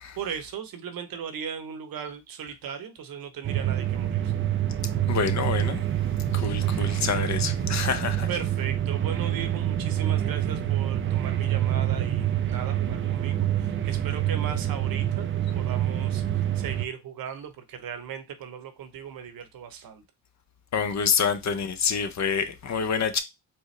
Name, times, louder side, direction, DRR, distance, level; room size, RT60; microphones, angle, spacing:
voice 1, 0.2-4.3 8.3-15.3 15.5-20.0, right 7 dB, 55° right, 0.9 m, -37 dB
sound 1, 3.4-16.9, right 11 dB, 30° right, 0.5 m, -26 dB
voice 2, 5.1-5.8 6.3-8.3 20.7-23.2, left 6 dB, 40° left, 0.7 m, -27 dB
4.3 x 2.1 x 3.2 m
supercardioid pair, 60°, 42 cm